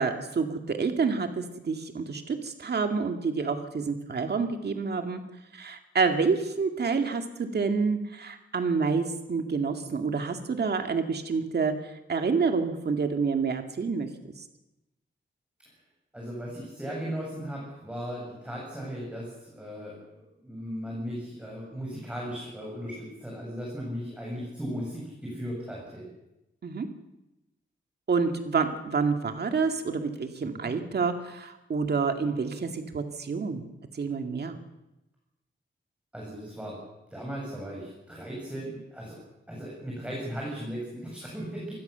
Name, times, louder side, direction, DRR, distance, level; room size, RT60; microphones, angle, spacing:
voice 1, 0.0-5.2 5.5-14.1 14.4-14.5 26.6-26.9 28.1-33.6 33.9-34.6, right 5 dB, 55° right, 6 dB, 2.3 m, -28 dB
voice 2, 16.1-20.0 20.4-26.0 30.4-30.7 36.1-36.8 37.1-39.2 39.5-41.7, equal, 5° right, -3 dB, 7.4 m, -37 dB
27.0 x 20.0 x 6.9 m, 0.92 s
wide cardioid pair, 175°, 20 cm